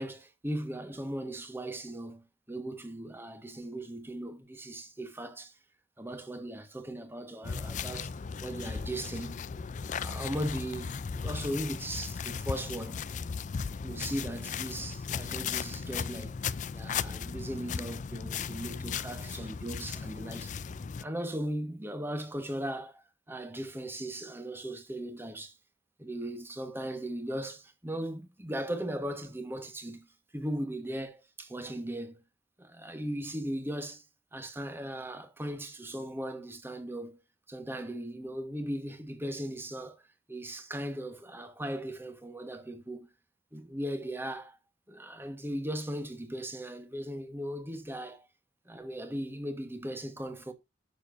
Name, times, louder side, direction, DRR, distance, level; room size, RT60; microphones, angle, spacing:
voice 1, 0.0-5.6 6.0-8.1 8.4-9.4 10.0-13.0 13.8-20.6 21.0-25.6 26.0-32.2 32.6-34.0 34.3-37.2 37.5-40.0 40.3-43.1 43.5-44.6 44.9-48.3 48.6-50.5, right 1 dB, 10° right, 1.4 m, -38 dB
sound 1, 7.4-21.0, left 6 dB, 40° left, 0.4 m, -36 dB
11.0 x 6.9 x 2.6 m
head